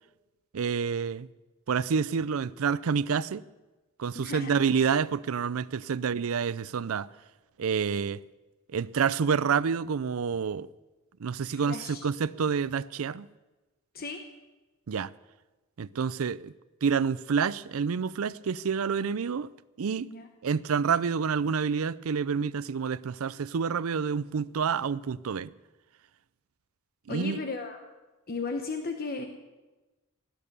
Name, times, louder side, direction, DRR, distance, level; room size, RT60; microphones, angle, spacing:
voice 1, 0.5-1.3 1.7-3.4 4.0-7.1 7.6-8.2 8.7-10.7 11.2-13.3 14.9-15.1 15.8-16.5 16.8-19.5 19.8-20.1 20.4-25.5 27.1-27.4, right 6 dB, 85° right, 0.5 m, -28 dB
voice 2, 4.1-4.5 11.6-12.1 13.9-14.2 20.0-20.3 27.1-27.8 28.3-29.3, left 4 dB, 45° left, 1.0 m, -35 dB
17.0 x 11.0 x 6.8 m
head